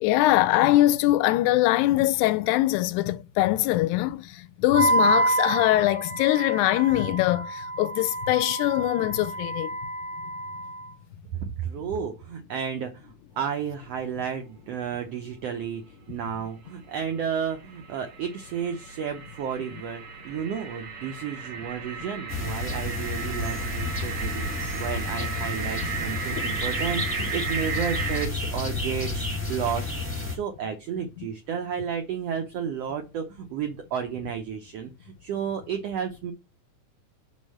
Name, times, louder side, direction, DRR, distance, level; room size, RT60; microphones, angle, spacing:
voice 1, 0.0-9.7 26.4-26.5 31.2-31.3, left 16 dB, 80° left, 1.9 m, -22 dB
Wind instrument woodwind instrument, 4.7-10.9, right 2 dB, 40° left, 0.6 m, -28 dB
voice 2, 11.3-24.5 24.7-36.3, right 7 dB, 75° right, 1.5 m, -32 dB
sound 1, 16.7-28.3, right 5 dB, 55° right, 1.7 m, -35 dB
sound 2, 22.3-30.4, left 2 dB, 10° left, 0.8 m, -31 dB
6.2 x 3.7 x 6.2 m
omnidirectional pair, 3.8 m